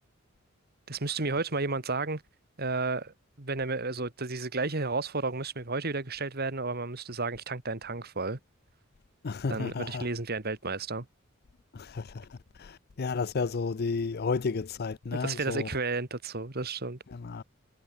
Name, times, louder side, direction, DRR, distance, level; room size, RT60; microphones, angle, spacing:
voice 1, 0.9-2.2 2.6-8.4 9.5-11.1 15.1-17.0, right 3 dB, 50° right, 2.2 m, -32 dB
voice 2, 9.2-10.1 11.7-12.3 12.6-15.7 17.1-17.4, left 4 dB, 50° left, 0.5 m, -32 dB
head